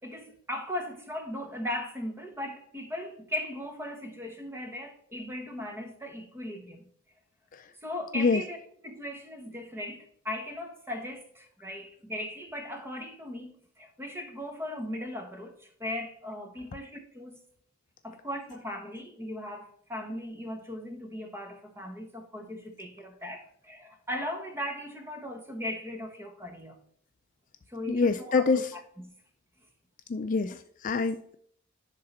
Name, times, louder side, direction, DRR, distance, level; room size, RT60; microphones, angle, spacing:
voice 1, 0.0-6.8 7.8-8.6 8.8-17.4 18.0-26.8 27.7-29.1, left 1 dB, 10° right, 1.1 m, -38 dB
voice 2, 27.9-28.7 30.1-31.3, left 4 dB, 35° left, 0.4 m, -26 dB
10.5 x 3.8 x 4.2 m
head